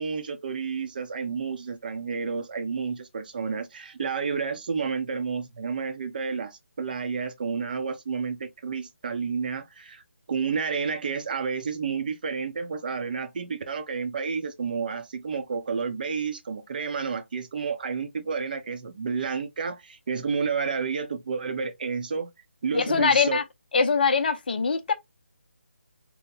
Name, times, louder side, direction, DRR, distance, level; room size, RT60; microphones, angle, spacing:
voice 1, 0.0-10.0 10.3-22.3 22.6-23.4, right 5 dB, 45° right, 0.6 m, -30 dB
voice 2, 22.7-23.4 23.7-24.9, left 5 dB, 45° left, 0.5 m, -22 dB
3.0 x 2.1 x 3.7 m
figure-of-eight pair, 155°, 7 cm